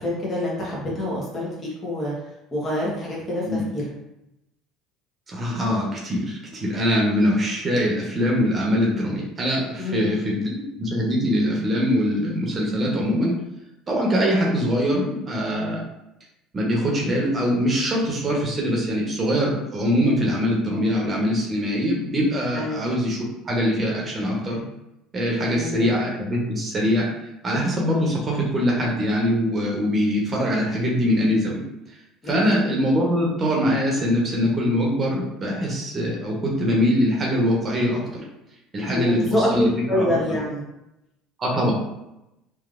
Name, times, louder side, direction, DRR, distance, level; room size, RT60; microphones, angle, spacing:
voice 1, 0.0-2.1 2.5-3.9 9.8-10.1 22.5-22.8 25.5-25.9 32.2-32.6 38.9-40.6, left 1 dB, 30° left, -5 dB, 1.3 m, -26 dB
voice 2, 5.3-13.3 13.9-15.8 16.5-23.2 23.5-24.6 25.1-27.1 27.4-31.6 32.3-38.0 38.7-39.7 40.0-40.1 41.4-41.7, equal, 35° right, -2 dB, 1.0 m, -23 dB
3.2 x 2.7 x 2.5 m, 0.89 s
hypercardioid pair, 70°, 0 cm